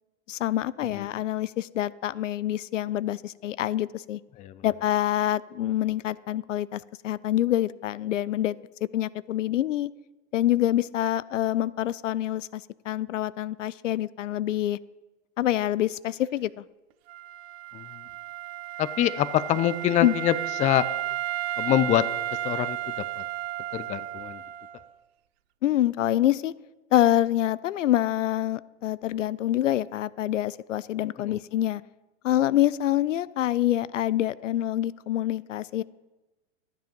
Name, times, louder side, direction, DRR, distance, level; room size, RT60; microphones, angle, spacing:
voice 1, 0.3-4.2 4.6-8.6 8.8-9.9 10.3-14.8 15.4-16.6 20.0-20.1 25.6-26.5 26.9-31.8 32.2-35.8, left 13 dB, 75° left, 20 dB, 0.5 m, -26 dB
Wind instrument woodwind instrument, 17.1-24.8, right 15 dB, 55° right, 0.6 m, -33 dB
voice 2, 18.8-20.9 21.6-22.1 22.4-23.2 23.7-24.4 31.2-31.4, left 12 dB, 20° left, 15 dB, 0.5 m, -25 dB
12.5 x 9.1 x 5.3 m, 1.1 s
hypercardioid pair, 95°, 37 cm